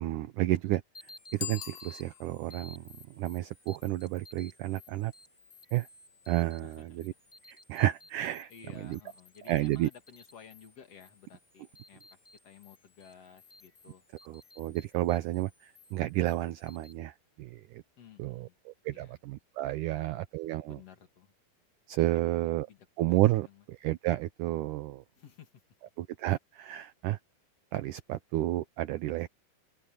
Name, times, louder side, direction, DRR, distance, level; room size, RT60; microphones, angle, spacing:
voice 1, 0.0-2.8 3.1-5.1 5.7-5.9 6.3-7.1 7.5-8.5 8.8-9.0 9.5-9.9 14.3-17.8 18.2-20.8 21.9-22.7 23.0-25.0 26.0-27.2 27.7-29.3, right 16 dB, 75° right, 2.0 m, -31 dB
sound 1, 0.9-16.9, left 2 dB, 20° left, 1.3 m, -56 dB
Bicycle bell, 1.3-2.6, left 12 dB, 75° left, 3.6 m, -41 dB
voice 2, 6.6-7.0 8.5-12.0 12.4-14.0 18.0-18.5 18.9-19.1 19.9-20.2 20.7-21.3 22.1-22.3 22.7-23.2 23.4-23.6 25.2-25.5, left 7 dB, 45° left, 3.1 m, -54 dB
omnidirectional pair, 4.2 m